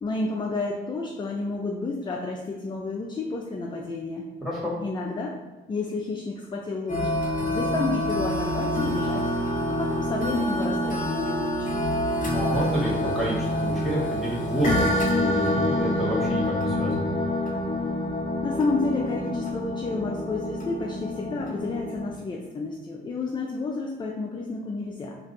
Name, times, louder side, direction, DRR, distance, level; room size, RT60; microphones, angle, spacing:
voice 1, 0.0-4.3 4.8-5.3 5.7-7.1 7.4-9.3 9.7-11.7 18.4-25.2, left 3 dB, 25° left, 0 dB, 0.4 m, -30 dB
voice 2, 4.4-4.8 12.2-17.1, right 1 dB, ahead, -6 dB, 1.4 m, -29 dB
sound 1, 6.9-22.1, left 1 dB, 40° left, 0.8 m, -27 dB
2.5 x 2.3 x 3.9 m, 1.2 s
cardioid pair, 90°, 20 cm